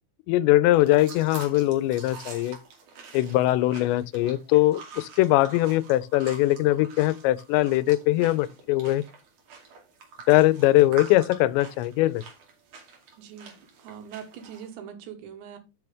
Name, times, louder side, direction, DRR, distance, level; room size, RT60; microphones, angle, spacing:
voice 1, 0.3-2.6 3.1-9.0 10.3-12.2, left 16 dB, 90° left, 2.9 m, -21 dB
sound 1, 0.7-14.7, right 5 dB, 50° right, 3.6 m, -46 dB
voice 2, 13.2-15.6, right 8 dB, 85° right, 3.8 m, -42 dB
12.0 x 6.3 x 3.5 m
omnidirectional pair, 5.0 m